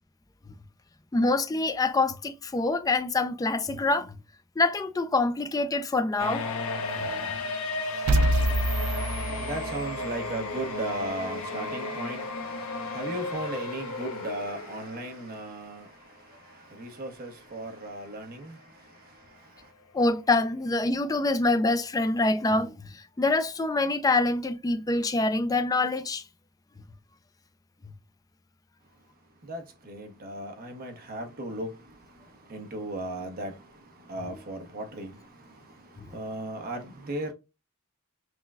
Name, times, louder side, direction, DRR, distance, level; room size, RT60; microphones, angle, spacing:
voice 1, 1.1-4.2 4.6-6.4 7.0-7.3 8.3-8.4 19.9-26.2 34.3-34.4 36.0-36.1, left 2 dB, 15° left, 0.3 m, -26 dB
sound 1, 6.2-15.5 15.8-15.9 16.8-16.9 17.3-17.4, left 2 dB, 80° left, 0.7 m, -34 dB
sound 2, 8.1-10.1, right 1 dB, 80° right, 0.5 m, -26 dB
voice 2, 8.8-15.9 16.8-18.6 29.5-31.7 32.5-33.5 34.1-35.1 36.1-37.3, right 1 dB, 45° right, 0.9 m, -36 dB
5.8 x 2.2 x 2.2 m
head